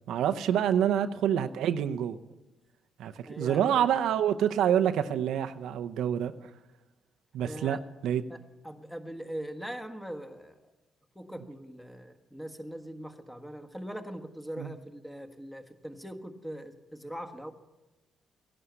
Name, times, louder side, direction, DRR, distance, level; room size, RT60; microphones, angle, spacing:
voice 1, 0.1-2.2 3.0-6.5 7.3-8.2 14.6-14.7, right 9 dB, 80° right, 9 dB, 0.7 m, -27 dB
voice 2, 3.2-3.9 7.4-7.8 8.3-8.4 8.6-10.7 11.1-17.5, equal, 5° left, 6 dB, 1.5 m, -41 dB
16.0 x 11.0 x 8.1 m, 1.1 s
cardioid pair, 90°, 0 cm